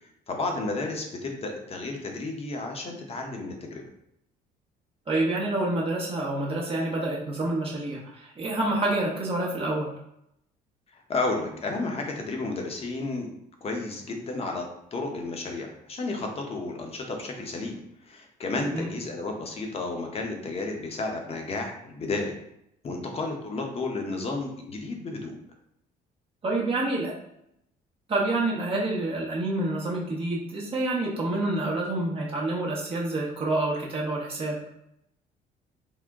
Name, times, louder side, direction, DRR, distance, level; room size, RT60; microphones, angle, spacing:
voice 1, 0.3-3.8 10.9-13.3 13.6-14.6 14.9-22.3 22.8-25.3, left 3 dB, 35° left, 2 dB, 0.7 m, -32 dB
voice 2, 5.1-9.9 18.7-18.9 26.4-27.1 28.1-34.6, right 2 dB, 35° right, -4 dB, 0.9 m, -28 dB
3.7 x 2.1 x 3.5 m, 0.78 s
cardioid pair, 110°, 17 cm